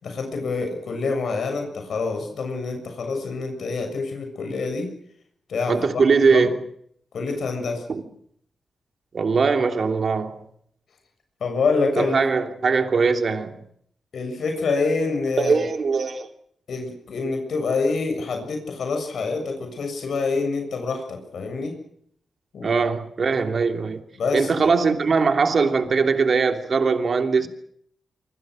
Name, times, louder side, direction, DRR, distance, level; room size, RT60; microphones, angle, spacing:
voice 1, 0.0-4.9 5.5-5.7 6.2-6.5 7.1-7.8 11.4-12.2 14.1-15.6 16.7-21.7 22.5-22.8 23.3-23.4 24.2-24.5, left 4 dB, 70° left, 7.1 m, -26 dB
voice 2, 5.7-6.6 7.9-8.0 9.1-10.4 12.0-13.6 15.4-16.3 22.6-24.0 24.3-27.5, right 5 dB, 50° right, 3.0 m, -21 dB
25.5 x 25.0 x 6.4 m
wide cardioid pair, 120°, 0 cm